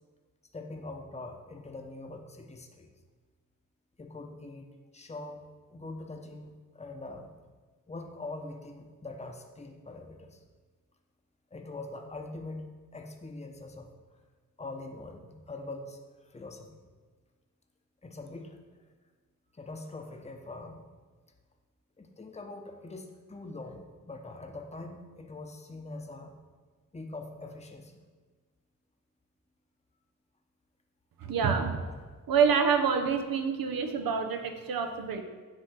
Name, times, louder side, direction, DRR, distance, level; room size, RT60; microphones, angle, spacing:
voice 1, 0.5-2.9 4.0-4.7 4.9-7.3 7.9-10.4 11.5-12.7 12.9-13.9 14.6-16.8 18.0-18.6 19.5-20.9 22.0-26.3 26.9-28.0 31.8-32.0, left 2 dB, 20° left, 3 dB, 0.9 m, -43 dB
voice 2, 31.2-31.8 32.3-35.2, right 6 dB, 80° right, 7 dB, 0.8 m, -27 dB
7.9 x 3.2 x 5.8 m, 1.4 s
cardioid pair, 50°, 35 cm